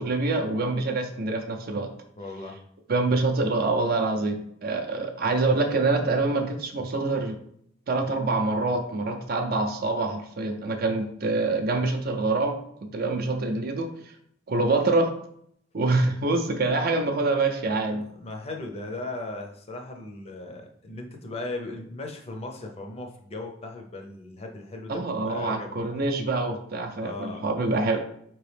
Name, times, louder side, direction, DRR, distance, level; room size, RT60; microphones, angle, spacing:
voice 1, 0.0-1.9 2.9-7.4 7.9-12.6 12.9-13.9 14.5-15.1 15.7-18.0 24.9-28.0, right 3 dB, 50° right, 4 dB, 0.5 m, -25 dB
voice 2, 2.2-2.6 17.9-25.8 27.0-27.4, left 2 dB, 30° left, 3 dB, 0.6 m, -37 dB
4.7 x 3.0 x 3.3 m, 0.69 s
head